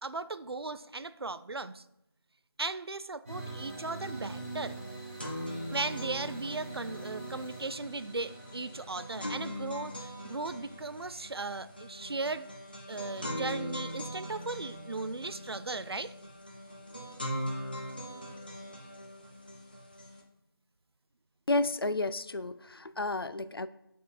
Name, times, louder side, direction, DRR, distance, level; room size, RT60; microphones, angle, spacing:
voice 1, 0.0-1.8 2.6-4.8 5.7-12.5 12.9-16.1, right 3 dB, 85° right, 14 dB, 0.4 m, -37 dB
sound 1, 3.2-12.0, right 2 dB, 15° right, 2.2 m, -45 dB
sound 2, 4.3-4.4 4.7-20.2, equal, 25° left, 0.7 m, -41 dB
voice 2, 21.5-23.7, left 2 dB, 75° left, 13 dB, 0.4 m, -31 dB
7.9 x 3.6 x 4.2 m, 0.82 s
figure-of-eight pair, 175°, 13 cm